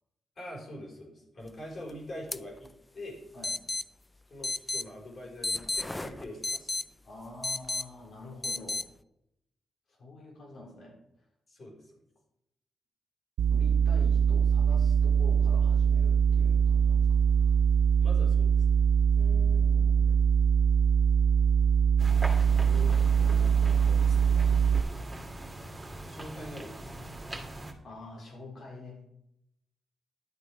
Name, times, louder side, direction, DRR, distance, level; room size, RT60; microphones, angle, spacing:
voice 1, 0.4-3.2 4.3-6.9 11.5-12.0 18.0-18.8 20.0-20.3 26.1-27.0, left 1 dB, 50° left, -1 dB, 4.9 m, -44 dB
sound 1, 2.3-2.4 2.6-2.7 3.4-3.8 4.4-4.8 5.4-6.8 7.4-7.8 8.4-8.8, left 2 dB, 15° left, 0.5 m, -32 dB
voice 2, 7.0-8.9 9.9-11.0 13.5-17.5 19.2-20.1 22.6-24.2 27.8-29.0, left 2 dB, 65° left, -1 dB, 4.1 m, -47 dB
sound 2, 13.4-24.8, right 7 dB, 90° right, 0.5 m, -23 dB
sound 3, 22.0-27.7, right 1 dB, 15° right, 2.1 m, -41 dB
11.0 x 8.1 x 5.0 m, 0.81 s
cardioid pair, 70°, 0 cm